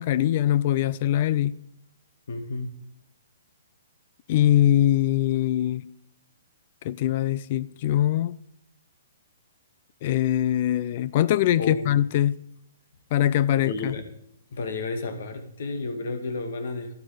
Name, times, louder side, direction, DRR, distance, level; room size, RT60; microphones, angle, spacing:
voice 1, 0.0-1.6 4.3-5.9 6.8-8.4 10.0-12.4 13.1-13.9, left 12 dB, 40° left, 0.4 m, -22 dB
voice 2, 2.3-2.7 11.6-12.0 13.5-14.1 14.5-16.9, left 3 dB, 65° left, 2.2 m, -32 dB
12.5 x 11.5 x 5.1 m
hypercardioid pair, 160°, 0 cm